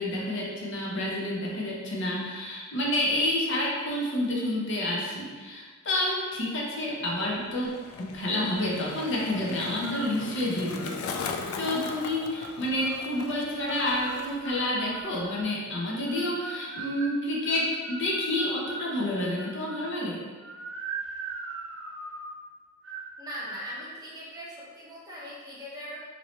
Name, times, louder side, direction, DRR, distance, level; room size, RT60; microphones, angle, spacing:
voice 1, 0.0-7.7 8.0-11.0 11.3-20.2, left 1 dB, 60° left, -3 dB, 0.6 m, -29 dB
Skateboard, 7.1-14.6 14.9-15.4, left 5 dB, 85° left, 0.3 m, -39 dB
sound 1, 9.8-10.2 10.8-11.4 12.0-13.0 13.6-15.5 16.1-18.9 19.4-19.9 20.4-22.4 22.8-23.1 23.4-23.8, right 4 dB, 60° right, 0.5 m, -40 dB
voice 2, 23.2-26.0, equal, 20° right, -6 dB, 0.7 m, -40 dB
2.9 x 2.6 x 3.0 m, 1.4 s
head